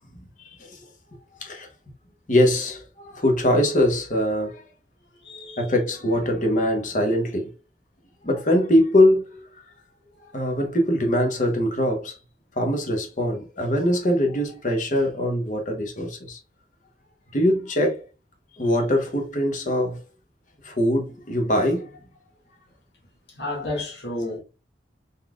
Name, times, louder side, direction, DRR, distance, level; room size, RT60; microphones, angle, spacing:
voice 1, 0.4-0.8 1.4-1.7 2.3-4.6 5.6-7.5 8.2-9.5 10.3-12.2 12.6-16.4 17.3-18.0 18.5-20.0 20.6-22.0, left 1 dB, 45° left, 1.1 m, -22 dB
voice 2, 5.2-5.7 23.4-24.4, left 2 dB, 70° left, 1.9 m, -31 dB
4.1 x 3.6 x 2.4 m
head